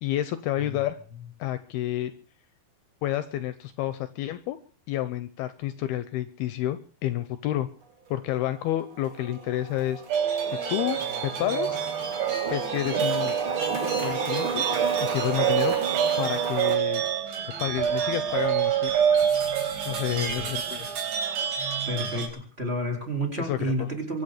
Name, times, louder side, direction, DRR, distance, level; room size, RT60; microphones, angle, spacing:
voice 1, 0.0-1.0 1.4-2.1 3.0-4.6 4.9-7.7 8.1-10.0 10.5-11.8 12.5-13.4 14.0-14.6 15.0-15.8 16.2-17.0 17.6-18.9 19.9-20.9 23.4-23.9, left 13 dB, 75° left, 13 dB, 2.6 m, -29 dB
sound 1, 8.1-8.2 8.6-16.8, right 5 dB, 40° right, 2.1 m, -32 dB
sound 2, 10.1-22.3, right 8 dB, 70° right, 6.1 m, -27 dB
voice 2, 20.1-20.5 21.9-22.3 22.6-24.2, equal, 15° right, 3 dB, 3.8 m, -30 dB
24.0 x 9.1 x 6.6 m, 0.43 s
omnidirectional pair, 4.9 m